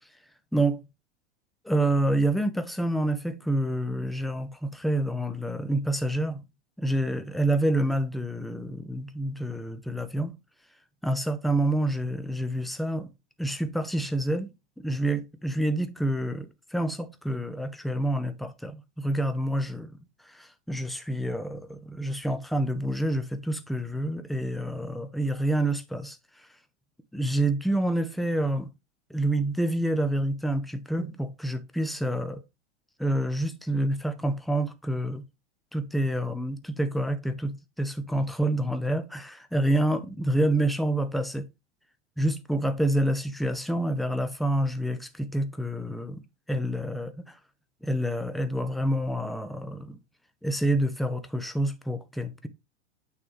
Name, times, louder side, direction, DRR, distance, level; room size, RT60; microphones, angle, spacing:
voice 1, 1.6-6.4 6.8-10.4 11.0-13.1 13.4-14.5 14.8-19.9 20.3-26.2 27.1-28.7 29.1-32.4 33.0-35.2 35.7-41.4 42.2-46.2 46.5-47.4 47.8-50.0 50.4-52.5, right 1 dB, ahead, 0.5 m, -28 dB
8.7 x 3.3 x 3.5 m
hypercardioid pair, 115°, 35 cm